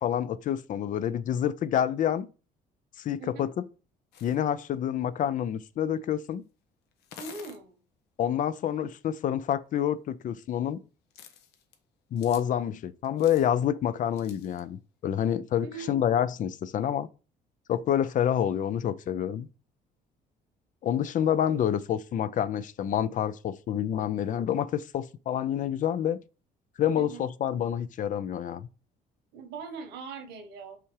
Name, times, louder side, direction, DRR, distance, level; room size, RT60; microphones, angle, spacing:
voice 1, 0.0-2.3 3.0-3.6 4.2-6.4 8.2-10.8 12.1-17.1 17.7-19.5 20.8-26.2 26.8-28.7, left 10 dB, 50° left, 0.5 m, -28 dB
sound 1, 4.1-4.4 6.0-6.1 6.9-7.6 9.7-9.8 11.1-11.8 12.2-12.4 13.0-13.5 14.1-14.6, left 8 dB, 80° left, 1.0 m, -49 dB
voice 2, 7.2-7.7 15.6-16.3 26.9-27.2 29.3-30.8, right 4 dB, 90° right, 1.6 m, -41 dB
5.7 x 3.6 x 4.7 m
cardioid pair, 110°, 17 cm